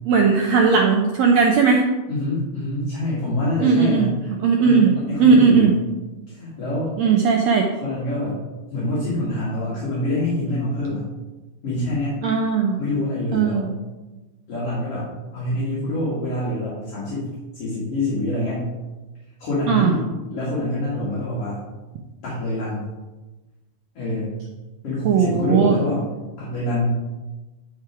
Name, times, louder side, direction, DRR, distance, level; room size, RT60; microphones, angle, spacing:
voice 1, 0.1-1.8 3.6-4.1 4.4-4.9 5.2-5.7 7.0-7.7 12.2-12.8 13.3-13.7 19.7-19.9 25.0-25.7, right 5 dB, 80° right, 1 dB, 1.5 m, -17 dB
voice 2, 2.1-4.2 4.6-5.7 6.3-6.9 7.8-8.4 8.7-11.0 11.6-12.2 12.8-13.7 14.5-17.3 17.5-18.7 19.4-21.6 22.2-22.8 23.9-24.3 24.8-26.0 26.4-26.9, left 1 dB, 45° left, -8 dB, 3.0 m, -26 dB
11.0 x 4.5 x 4.8 m, 1.1 s
omnidirectional pair, 4.0 m